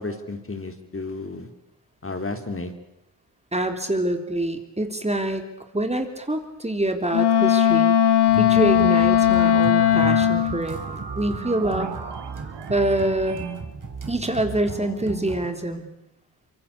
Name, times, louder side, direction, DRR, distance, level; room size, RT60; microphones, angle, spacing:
voice 1, 0.0-1.5 2.0-2.7, left 3 dB, 30° left, 6 dB, 3.4 m, -32 dB
voice 2, 3.5-5.4 5.7-8.0 8.4-11.9 12.7-13.4 14.1-15.9, right 1 dB, 15° right, 6 dB, 3.7 m, -25 dB
Wind instrument woodwind instrument, 7.1-10.6, left 10 dB, 70° left, 1.2 m, -18 dB
sound 1, 8.1-13.5, right 6 dB, 80° right, 2.8 m, -38 dB
sound 2, 8.3-15.5, right 4 dB, 50° right, 3.9 m, -35 dB
25.0 x 23.0 x 8.5 m, 0.84 s
supercardioid pair, 50°, 41 cm